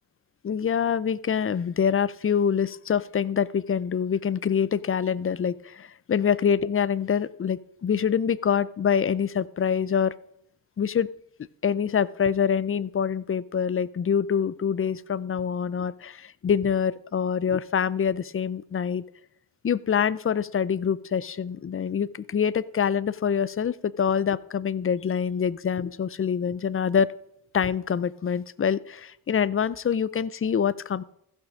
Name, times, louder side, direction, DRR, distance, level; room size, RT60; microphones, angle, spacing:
voice 1, 0.4-10.1 10.8-11.1 11.6-19.0 19.6-27.1 27.5-31.0, left 7 dB, 30° left, 20 dB, 0.5 m, -25 dB
15.0 x 6.2 x 5.0 m, 0.75 s
cardioid pair, 55°, 43 cm